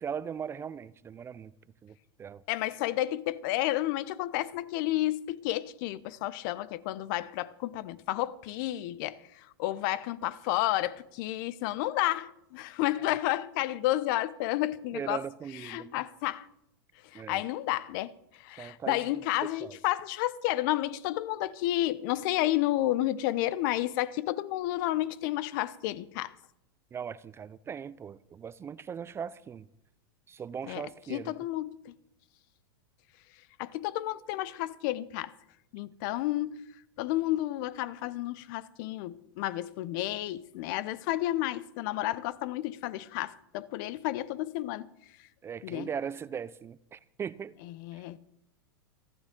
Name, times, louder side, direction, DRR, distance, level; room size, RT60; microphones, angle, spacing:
voice 1, 0.0-1.5 1.8-2.4 13.0-13.1 14.9-16.0 17.1-17.4 18.6-19.0 19.4-19.8 26.9-29.7 30.3-31.3 45.4-47.5 47.9-48.0, right 7 dB, 20° right, 0.4 m, -39 dB
voice 2, 2.5-15.2 15.6-16.5 17.1-18.1 18.4-26.3 30.7-30.8 31.1-31.9 33.6-35.3 35.7-36.6 37.0-44.9 45.6-45.9 47.7-48.2, left 15 dB, 55° left, 0.7 m, -31 dB
28.0 x 9.8 x 3.8 m
hypercardioid pair, 115°, 13 cm